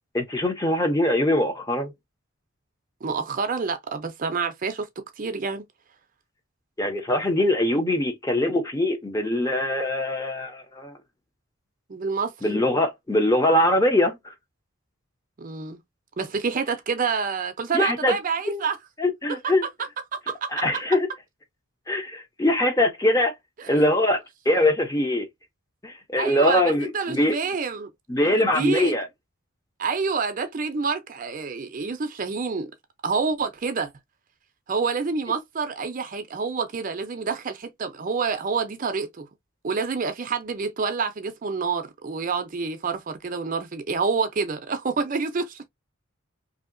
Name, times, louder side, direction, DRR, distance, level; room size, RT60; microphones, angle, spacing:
voice 1, 0.1-1.9 6.8-11.0 12.4-14.3 17.7-18.2 18.5-18.6 19.0-19.6 20.5-21.1 21.9-23.3 23.7-25.3 25.8-27.4 28.1-29.1, left 1 dB, 15° left, 0.6 m, -22 dB
voice 2, 3.0-5.6 11.9-12.3 15.4-15.8 16.2-18.8 19.3-19.4 20.1-20.5 23.6-23.8 26.2-27.9 28.4-28.9 29.8-32.7 33.0-33.9 34.7-39.3 39.6-45.7, right 5 dB, 40° right, 0.4 m, -28 dB
2.8 x 2.7 x 2.5 m
head